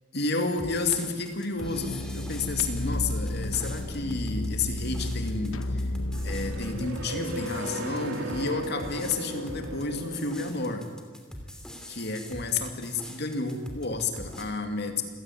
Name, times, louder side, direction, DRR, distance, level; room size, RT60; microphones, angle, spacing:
voice 1, 0.1-5.9 6.2-10.9 11.9-15.0, left 3 dB, 55° left, 5 dB, 2.8 m, -31 dB
sound 1, 0.6-14.4, equal, 5° left, 2.9 m, -43 dB
sound 2, 1.6-6.9, left 1 dB, 75° left, 1.2 m, -32 dB
sound 3, 2.7-10.5, right 1 dB, 80° right, 3.1 m, -38 dB
27.5 x 17.0 x 9.6 m, 1.5 s
head